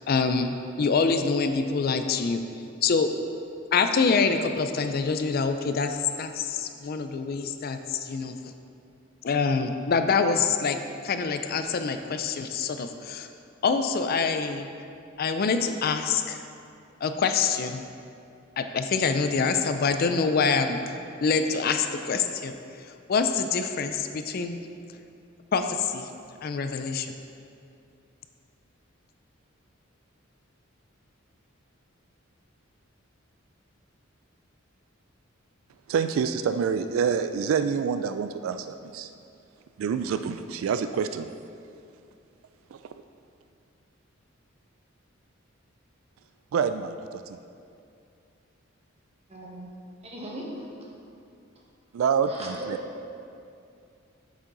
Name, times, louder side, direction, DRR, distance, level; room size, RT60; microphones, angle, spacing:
voice 1, 0.1-2.4 2.8-3.1 3.7-8.3 9.2-13.3 13.6-14.7 15.2-16.4 17.0-17.8 18.6-20.8 21.2-24.6 25.5-26.1 26.4-27.1, left 5 dB, 45° left, 8 dB, 0.4 m, -26 dB
voice 2, 35.9-39.1 39.8-41.3 42.7-42.8 46.5-47.4 51.9-52.6, right 6 dB, 75° right, 10 dB, 0.3 m, -27 dB
voice 3, 49.3-49.7 50.0-50.7 52.2-52.9, right 1 dB, 30° right, -3 dB, 1.5 m, -38 dB
8.5 x 7.2 x 3.9 m, 2.5 s
head